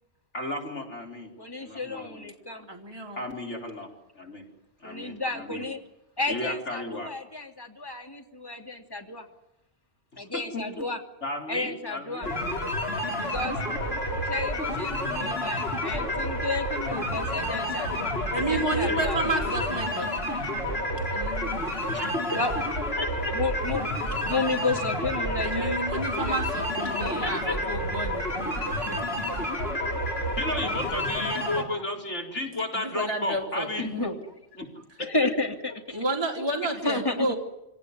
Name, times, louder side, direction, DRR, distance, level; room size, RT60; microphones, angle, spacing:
voice 1, 0.3-1.3 1.6-2.3 3.2-3.9 4.2-4.4 4.8-5.6 6.3-7.1 10.3-10.8 11.2-12.3 18.8-19.0 21.9-22.2 23.0-23.3 26.8-27.5 28.5-28.8 30.4-33.9 34.6-34.7 35.0-35.1, left 1 dB, 75° left, 1 dB, 4.9 m, -33 dB
voice 2, 1.4-2.7 4.8-5.8 6.2-9.2 10.2-11.0 11.5-12.3 13.2-13.6 14.3-19.5 22.3-22.5 23.3-26.4 27.0-27.2 28.8-29.0 31.7-31.8 33.8-34.2 35.0-36.0 36.8-37.3, left 3 dB, 20° left, 3 dB, 2.8 m, -32 dB
voice 3, 2.7-3.3 18.3-20.1 21.1-21.6 25.4-28.3 32.7-34.1 35.9-37.4, right 2 dB, 20° right, 1 dB, 3.1 m, -31 dB
sound 1, 12.2-31.6, left 1 dB, 55° left, 4.3 m, -29 dB
26.0 x 18.5 x 9.7 m, 0.90 s
omnidirectional pair, 1.2 m